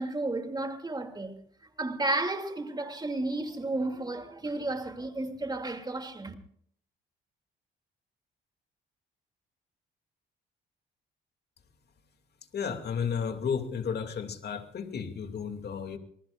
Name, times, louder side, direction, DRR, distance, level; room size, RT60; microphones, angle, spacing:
voice 1, 0.0-1.4 1.8-6.3, right 2 dB, 20° right, 2.8 m, -32 dB
voice 2, 12.5-16.0, left 6 dB, 55° left, 2.6 m, -33 dB
26.5 x 19.5 x 2.5 m
cardioid pair, 90°, 20 cm